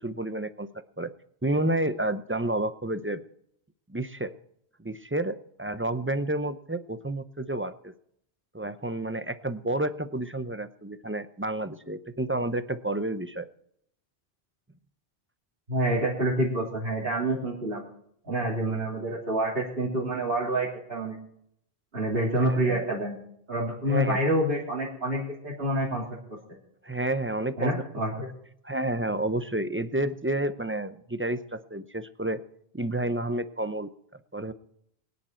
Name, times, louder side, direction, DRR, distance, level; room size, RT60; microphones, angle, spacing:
voice 1, 0.0-0.7 1.0-1.1 1.4-3.2 3.9-4.3 4.8-7.9 8.5-13.5 22.4-22.8 23.9-24.2 26.8-27.7 28.1-28.2 28.6-32.4 32.7-33.9 34.3-34.5, right 1 dB, 15° right, 11 dB, 0.6 m, -30 dB
voice 2, 15.7-17.8 18.3-21.2 21.9-23.2 23.5-26.0 27.6-28.3, right 1 dB, 65° right, -6 dB, 3.5 m, -27 dB
22.5 x 9.9 x 4.5 m, 0.70 s
omnidirectional pair, 1.1 m